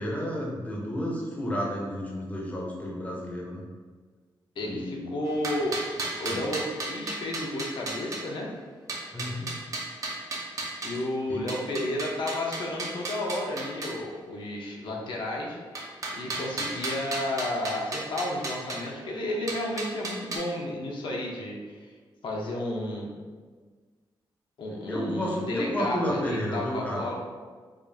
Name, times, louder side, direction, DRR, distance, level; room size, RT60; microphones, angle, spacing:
voice 1, 0.0-3.6 4.6-5.1 6.3-6.4 9.1-9.5 11.3-11.4 24.9-27.1, equal, 15° left, -3 dB, 0.6 m, -31 dB
voice 2, 4.6-5.8 6.2-8.5 10.8-15.6 16.1-21.9 22.2-23.1 24.6-27.2, left 1 dB, 65° left, -2 dB, 0.6 m, -32 dB
sound 1, 5.3-8.2 8.9-11.0 11.5-14.0 15.8-18.8 19.5-20.4, right 2 dB, 40° right, 0.5 m, -34 dB
4.9 x 2.4 x 2.6 m, 1.5 s
wide cardioid pair, 180°, 9 cm